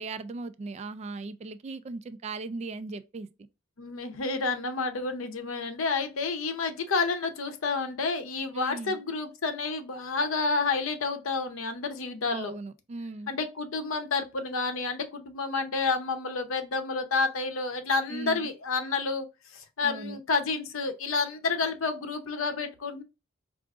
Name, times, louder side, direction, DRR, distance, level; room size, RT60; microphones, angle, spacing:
voice 1, 0.0-3.3 8.5-9.0 12.3-13.3 18.1-18.5 19.8-20.2, right 3 dB, 30° right, 0.3 m, -38 dB
voice 2, 3.8-12.5 13.3-23.0, left 4 dB, 70° left, 0.7 m, -30 dB
4.7 x 2.5 x 2.4 m
head